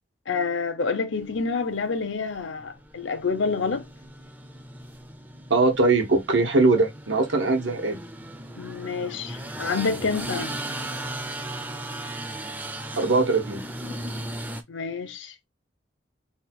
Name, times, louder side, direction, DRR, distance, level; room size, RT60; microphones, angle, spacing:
voice 1, 0.3-3.9 8.6-10.6 14.7-15.3, left 4 dB, 85° left, 0.7 m, -28 dB
sound 1, 1.1-14.6, right 1 dB, 10° right, 0.4 m, -37 dB
voice 2, 5.5-8.0 13.0-13.6, right 3 dB, 85° right, 1.2 m, -21 dB
3.5 x 2.3 x 4.3 m
head